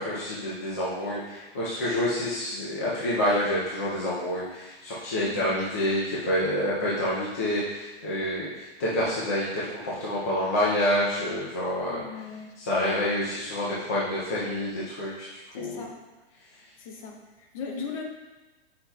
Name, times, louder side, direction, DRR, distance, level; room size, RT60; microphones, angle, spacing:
voice 1, 0.0-12.0 12.6-15.3 15.5-15.9, left 1 dB, 15° left, -8 dB, 0.3 m, -28 dB
voice 2, 5.3-5.7 11.9-12.5 15.5-16.0 16.8-18.0, left 5 dB, 30° left, 2 dB, 0.7 m, -38 dB
8.1 x 5.6 x 2.2 m, 1.2 s
hypercardioid pair, 165°, 32 cm